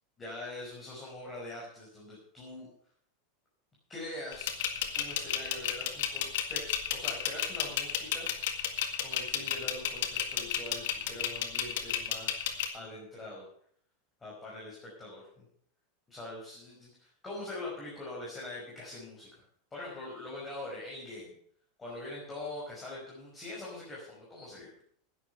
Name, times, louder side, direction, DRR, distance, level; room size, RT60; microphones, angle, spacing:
voice 1, 0.2-2.7 3.9-4.6 5.0-8.3 9.0-12.4 12.7-13.4 14.2-15.2 16.1-19.3 19.7-21.3 21.8-24.7, left 2 dB, 15° left, -5 dB, 5.3 m, -43 dB
sound 1, 4.3-12.7, left 10 dB, 75° left, 1.9 m, -32 dB
11.0 x 9.8 x 7.0 m, 0.62 s
supercardioid pair, 130°, 0 cm